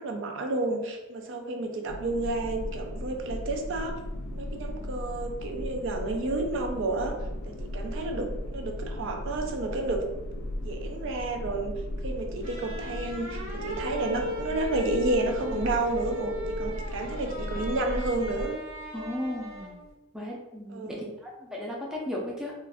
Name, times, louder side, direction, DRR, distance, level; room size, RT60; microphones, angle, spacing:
voice 1, 0.0-4.0 4.3-7.2 7.4-10.0 10.6-11.7 12.0-18.6 20.7-21.1, right 2 dB, 60° right, 3 dB, 0.4 m, -31 dB
sound 1, 1.9-18.5, left 1 dB, 75° left, 0.4 m, -37 dB
sound 2, 12.4-19.9, left 1 dB, 90° right, 1.1 m, -37 dB
voice 2, 18.9-19.8 20.1-22.5, left 1 dB, 5° right, -4 dB, 0.5 m, -35 dB
2.4 x 2.4 x 3.4 m, 1.0 s
head